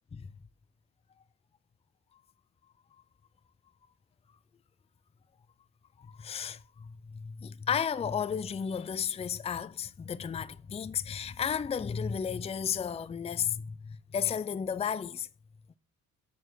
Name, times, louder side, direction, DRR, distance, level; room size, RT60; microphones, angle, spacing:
voice 1, 6.0-15.3, left 7 dB, 20° left, 0.4 m, -33 dB
6.9 x 6.7 x 6.2 m
cardioid pair, 90°, 30 cm